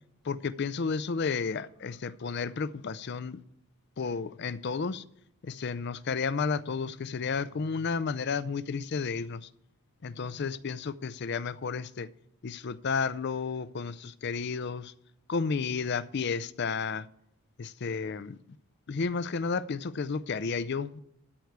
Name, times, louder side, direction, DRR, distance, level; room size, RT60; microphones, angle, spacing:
voice 1, 0.2-3.4 4.0-5.0 5.4-9.5 10.0-12.1 12.4-14.9 15.3-17.1 17.6-18.4 18.9-21.0, left 5 dB, 50° left, 0.4 m, -32 dB
13.0 x 4.7 x 7.9 m
head